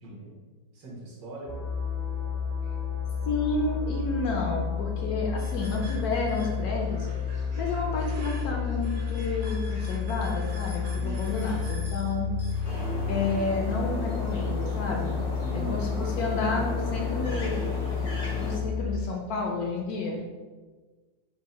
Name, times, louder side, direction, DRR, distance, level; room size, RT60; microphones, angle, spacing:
voice 1, 0.0-0.5 0.7-1.7 10.9-11.7 15.4-15.8, right 2 dB, 75° right, -4 dB, 1.8 m, -40 dB
sound 1, 1.5-19.0, left 7 dB, 20° right, 0.6 m, -31 dB
voice 2, 3.3-7.1 7.6-12.3 13.1-15.2 15.7-17.6 18.4-20.2, left 3 dB, 70° left, 0 dB, 1.0 m, -30 dB
sound 2, 5.4-13.4, right 1 dB, 50° right, 1.0 m, -48 dB
sound 3, 12.6-18.6, left 1 dB, 45° left, 0.6 m, -36 dB
5.2 x 2.1 x 4.1 m, 1.4 s
omnidirectional pair, 1.9 m